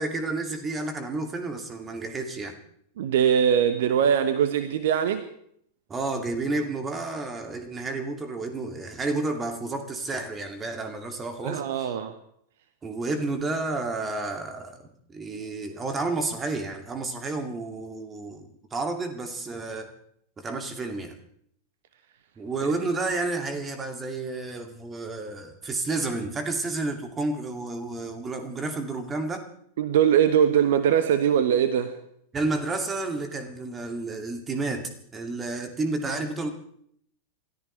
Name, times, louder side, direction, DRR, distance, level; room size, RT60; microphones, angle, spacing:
voice 1, 0.0-2.6 5.9-11.9 12.8-19.9 20.4-21.2 22.4-29.5 32.3-36.5, right 3 dB, 20° right, 5 dB, 2.5 m, -31 dB
voice 2, 3.0-5.2 11.4-12.1 22.6-22.7 29.8-31.9, right 8 dB, 55° right, 10 dB, 1.2 m, -22 dB
29.0 x 14.0 x 3.4 m, 0.67 s
figure-of-eight pair, 90°, 0 cm